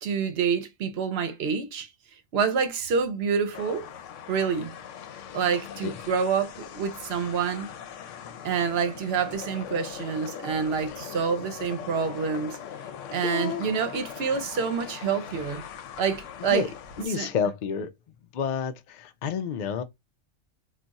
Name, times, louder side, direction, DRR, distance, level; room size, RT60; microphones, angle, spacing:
voice 1, 0.0-1.9 2.3-3.9 4.3-4.7 5.3-7.7 8.4-12.6 13.1-15.6 16.0-16.7 17.1-17.3, right 6 dB, 65° right, 0.8 m, -27 dB
sound 1, 3.5-17.1, left 8 dB, 90° left, 0.9 m, -41 dB
voice 2, 13.2-13.6 16.4-16.7 17.0-17.9 18.3-19.8, left 7 dB, 60° left, 0.5 m, -29 dB
2.3 x 2.3 x 3.9 m
omnidirectional pair, 1.2 m